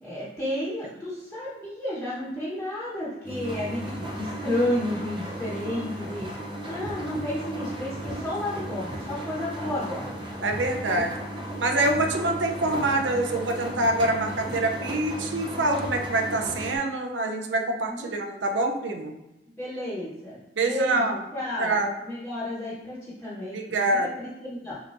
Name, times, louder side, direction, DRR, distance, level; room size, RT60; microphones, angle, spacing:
voice 1, 0.0-10.1 14.4-14.6 17.9-18.1 19.5-23.9 24.2-24.8, left 1 dB, 5° left, -9 dB, 1.2 m, -32 dB
sound 1, 3.2-16.8, right 1 dB, 25° right, 0.7 m, -35 dB
voice 2, 10.4-11.1 11.6-19.1 20.6-21.2 21.6-21.9 23.5-24.1, right 2 dB, 85° right, 4 dB, 0.6 m, -25 dB
6.8 x 2.9 x 2.6 m, 0.95 s
head